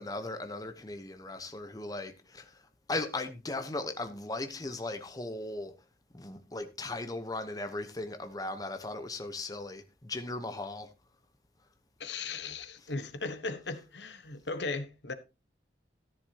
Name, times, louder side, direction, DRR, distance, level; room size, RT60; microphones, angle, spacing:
voice 1, 0.0-2.6 2.9-5.7 6.1-10.9, left 2 dB, 20° left, 1.0 m, -37 dB
voice 2, 12.0-15.1, left 3 dB, 90° left, 1.2 m, -37 dB
13.5 x 10.5 x 2.9 m
head